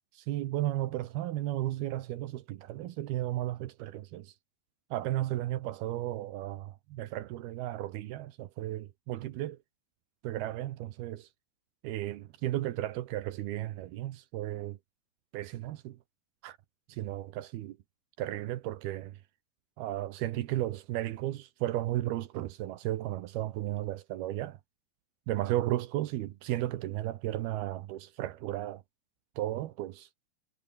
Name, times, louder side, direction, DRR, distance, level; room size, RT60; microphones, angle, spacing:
voice 1, 0.2-4.3 4.9-9.6 10.2-11.3 11.8-14.8 15.3-16.0 16.4-16.6 16.9-17.8 18.2-19.2 19.8-24.6 25.3-28.8 29.4-30.1, right 14 dB, 80° right, 3.0 m, -34 dB
omnidirectional pair, 4.4 m